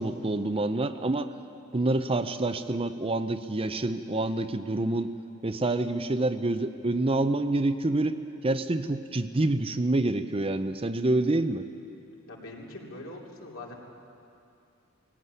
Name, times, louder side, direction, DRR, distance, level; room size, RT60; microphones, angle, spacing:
voice 1, 0.0-1.3 1.7-5.1 5.4-11.6, right 2 dB, 25° right, 9 dB, 0.6 m, -27 dB
voice 2, 12.3-13.7, left 2 dB, 65° left, -2 dB, 3.3 m, -42 dB
20.0 x 17.0 x 9.7 m, 2.7 s
head